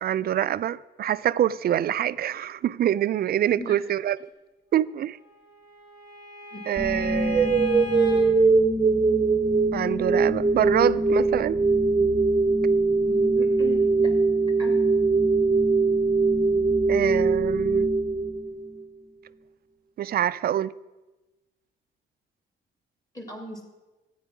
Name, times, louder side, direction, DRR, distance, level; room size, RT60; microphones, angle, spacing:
voice 1, 0.0-4.2 4.7-5.2 6.7-7.6 9.7-11.6 16.9-17.9 20.0-20.7, right 11 dB, 50° right, 0.4 m, -25 dB
Bowed string instrument, 5.1-8.2, left 4 dB, 90° left, 4.1 m, -39 dB
sound 1, 6.8-18.8, right 3 dB, 20° right, 0.8 m, -22 dB
voice 2, 13.0-14.1 14.6-14.8 23.1-23.6, left 1 dB, 20° left, 2.5 m, -38 dB
12.5 x 9.3 x 6.0 m
cardioid pair, 90°, 20 cm